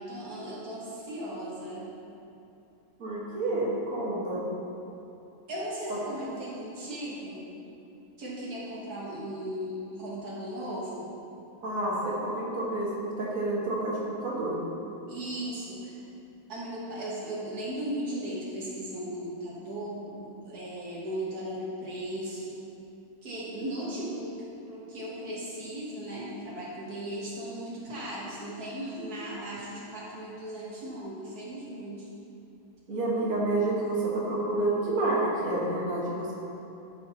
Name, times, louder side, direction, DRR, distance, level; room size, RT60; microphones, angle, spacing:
voice 1, 0.0-1.9 5.5-7.5 8.2-11.1 15.1-16.0 16.5-22.6 23.2-32.1, right 1 dB, 80° right, -7 dB, 1.9 m, -37 dB
voice 2, 3.0-4.4 5.9-6.0 11.6-14.6 32.9-36.3, right 2 dB, 60° right, -6 dB, 2.0 m, -29 dB
12.5 x 6.5 x 2.9 m, 2.8 s
omnidirectional pair, 1.6 m